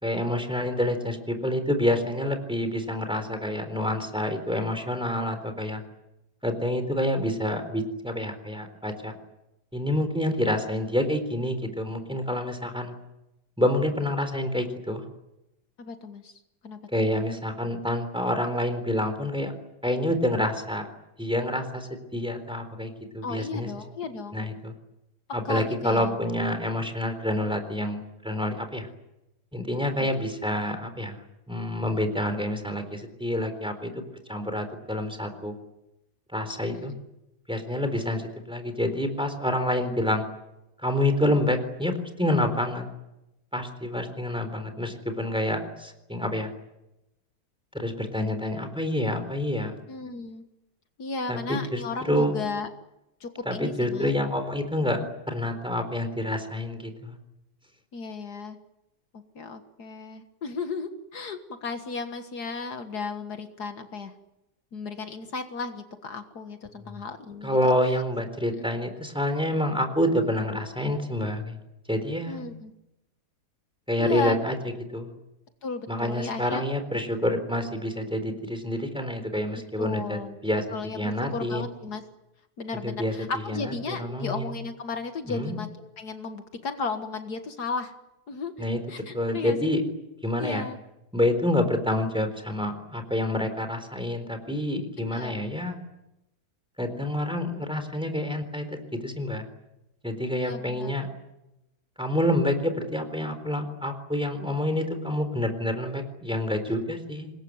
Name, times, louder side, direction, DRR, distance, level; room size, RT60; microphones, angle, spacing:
voice 1, 0.0-5.8 6.4-9.1 9.7-12.9 13.6-15.0 16.9-19.5 19.8-20.9 21.2-23.7 24.3-24.7 25.3-28.9 29.5-34.0 34.3-35.5 36.3-36.9 37.5-40.3 40.8-42.8 43.5-46.5 47.7-49.8 51.3-51.8 52.0-52.3 53.5-55.0 55.3-57.2 66.8-67.0 67.4-71.6 71.9-72.4 73.9-74.5 74.9-75.1 75.9-80.6 81.0-81.7 82.8-83.1 83.5-84.5 85.3-85.6 88.6-88.8 89.1-89.8 90.2-90.6 91.1-95.8 96.8-99.4 100.0-101.1 102.0-107.3, left 1 dB, 5° right, 7 dB, 3.9 m, -28 dB
voice 2, 15.8-16.8 23.2-24.4 25.5-26.2 30.0-30.1 36.7-37.0 39.7-40.1 49.9-50.4 51.0-52.7 53.2-54.2 57.9-58.6 59.1-64.1 64.7-67.7 68.5-68.7 72.3-72.7 74.0-74.4 75.6-76.6 79.8-80.4 80.7-82.0 82.6-87.9 88.3-88.5 88.9-89.7 90.4-90.8 95.0-95.3 100.3-100.9, left 4 dB, 70° left, 7 dB, 2.1 m, -35 dB
26.0 x 21.0 x 9.6 m, 0.92 s
omnidirectional pair, 1.8 m